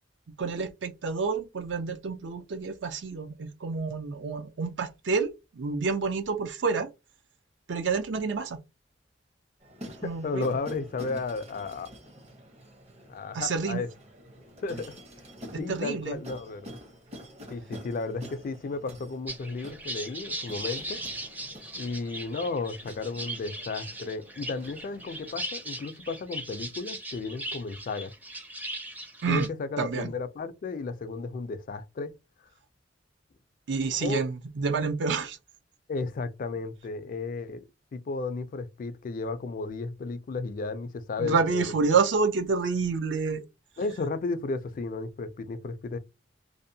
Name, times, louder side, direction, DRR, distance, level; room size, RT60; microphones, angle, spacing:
voice 1, 0.4-6.9 7.7-8.6 10.0-10.4 13.3-13.8 15.5-16.2 29.2-29.5 29.8-30.1 33.7-35.4 41.2-43.4, right 4 dB, 70° right, 0.5 m, -28 dB
sound 1, 9.6-25.4, equal, 35° right, 0.7 m, -47 dB
voice 2, 10.0-11.9 13.1-13.9 14.6-14.9 15.6-16.8 17.5-21.0 21.7-28.1 29.3-32.1 34.0-34.2 35.9-37.6 37.9-41.7 43.8-46.0, left 3 dB, 50° left, 0.3 m, -33 dB
sound 2, 19.3-29.5, right 1 dB, 10° right, 0.5 m, -38 dB
2.6 x 2.1 x 2.6 m
head